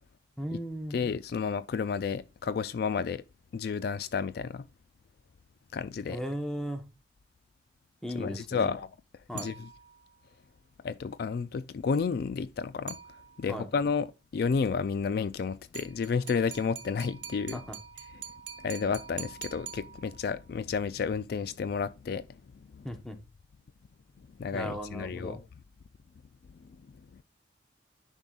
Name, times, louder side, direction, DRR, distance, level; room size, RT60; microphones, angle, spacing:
voice 1, 0.4-1.0 6.1-6.8 8.0-8.7 9.3-9.5 13.5-13.7 17.5-17.8 22.8-23.2 24.5-25.4, equal, 5° left, 1.0 m, -36 dB
voice 2, 0.9-3.2 3.5-4.7 5.7-6.2 8.1-8.9 9.3-9.7 10.8-13.0 13.4-14.1 14.3-17.6 18.6-22.4 22.7-22.9 24.4-25.4 26.6-26.7 27.1-27.2, left 5 dB, 55° left, 0.3 m, -31 dB
sound 1, 9.4-10.2 12.9-13.6 15.8-20.4, right 9 dB, 65° right, 1.4 m, -45 dB
10.5 x 5.5 x 2.4 m
head